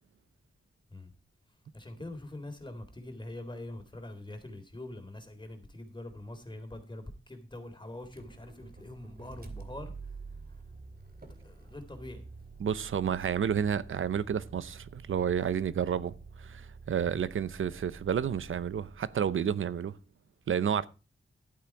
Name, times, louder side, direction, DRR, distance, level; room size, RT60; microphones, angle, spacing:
voice 1, 1.7-10.2 10.4-10.6 11.4-12.3 17.1-17.2, left 1 dB, 20° left, 3.7 m, -44 dB
Motor vehicle (road), 8.0-19.2, right 4 dB, 45° right, 2.7 m, -48 dB
voice 2, 12.6-19.9 20.5-20.9, right 8 dB, 75° right, 0.7 m, -30 dB
12.5 x 8.7 x 4.7 m
cardioid pair, 60°, 21 cm